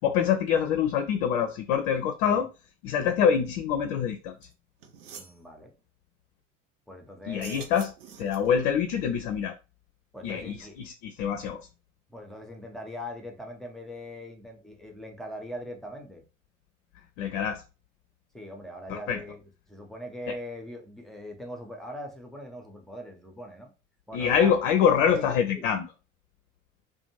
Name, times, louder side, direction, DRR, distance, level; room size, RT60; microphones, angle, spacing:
voice 1, 0.0-2.5 2.8-4.4 7.3-7.9 8.2-9.6 10.2-11.7 17.2-17.6 18.9-19.2 20.3-20.4 24.1-25.9, left 8 dB, 60° left, 0.5 m, -25 dB
sound 1, 4.4-4.5 4.8-5.4 7.3-8.6, right 7 dB, 75° right, 0.6 m, -46 dB
voice 2, 5.2-5.7 6.9-7.6 10.1-10.8 12.1-16.2 18.3-19.4 19.7-23.7 24.1-24.5 25.0-25.7, equal, ahead, 0.6 m, -41 dB
2.5 x 2.2 x 2.9 m
figure-of-eight pair, 65°, 38 cm